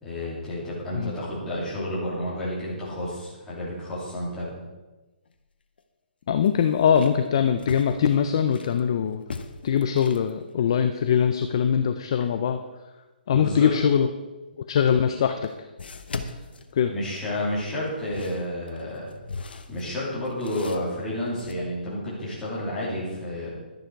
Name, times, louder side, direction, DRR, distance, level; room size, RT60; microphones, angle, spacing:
voice 1, 0.0-4.6 13.3-13.7 16.9-19.1 19.7-23.5, left 1 dB, 5° left, -8 dB, 2.8 m, -30 dB
sound 1, 5.3-5.4 5.8-5.9 6.4-8.8 9.2-10.3 14.6-14.7 15.8-17.3 17.8-21.5, left 4 dB, 65° left, 1.1 m, -39 dB
voice 2, 6.3-9.2 9.6-12.6 13.3-14.1 14.6-15.5 16.7-16.9, left 8 dB, 25° left, 8 dB, 0.4 m, -22 dB
12.0 x 10.5 x 4.6 m, 1.1 s
hypercardioid pair, 175°, 6 cm